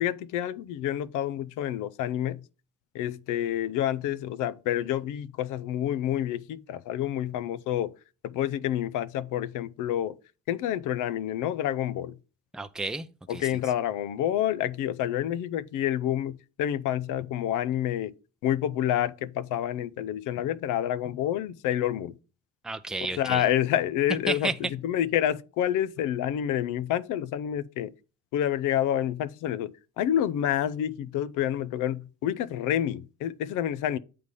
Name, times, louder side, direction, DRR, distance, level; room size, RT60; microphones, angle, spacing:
voice 1, 0.0-2.4 2.9-7.9 8.2-10.2 10.5-12.2 13.3-18.1 18.4-22.1 23.0-27.9 28.3-29.7 30.0-34.0, left 11 dB, 90° left, 0.5 m, -28 dB
voice 2, 12.5-13.5 22.6-23.4 24.3-24.5, right 2 dB, ahead, 0.5 m, -32 dB
8.1 x 3.4 x 5.3 m
cardioid pair, 90°, 30 cm